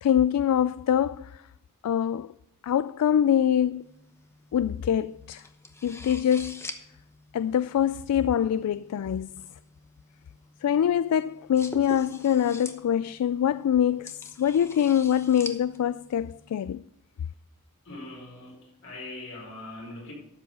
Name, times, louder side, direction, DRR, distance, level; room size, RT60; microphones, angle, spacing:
voice 1, 0.0-1.3 1.8-2.3 2.6-3.8 4.5-5.4 5.8-6.6 7.3-9.4 10.6-16.8, left 9 dB, 80° left, 0.3 m, -24 dB
sound 1, 3.8-16.6, left 2 dB, 10° left, 0.9 m, -46 dB
voice 2, 17.8-20.1, left 2 dB, 60° left, 4.5 m, -41 dB
12.5 x 7.9 x 5.3 m
head